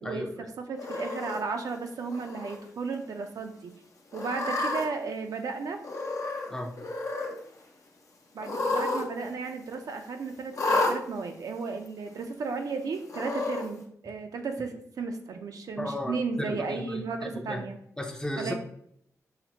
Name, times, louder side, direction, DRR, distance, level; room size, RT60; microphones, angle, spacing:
voice 1, 0.0-0.5 6.5-6.7 15.8-17.6 18.0-18.5, left 1 dB, 10° left, 2 dB, 0.5 m, -35 dB
voice 2, 0.6-3.7 4.1-5.8 8.3-17.8 18.4-18.5, right 4 dB, 75° right, 5 dB, 0.5 m, -34 dB
Cat, 0.8-1.4 2.1-2.6 2.9-3.0 4.1-4.8 5.8-6.5 6.8-7.3 8.4-9.0 9.3-9.4 10.5-10.9 11.9-12.0 13.1-13.7, left 2 dB, 65° left, 0.7 m, -30 dB
5.7 x 2.1 x 2.8 m, 0.69 s
wide cardioid pair, 110°, 6 cm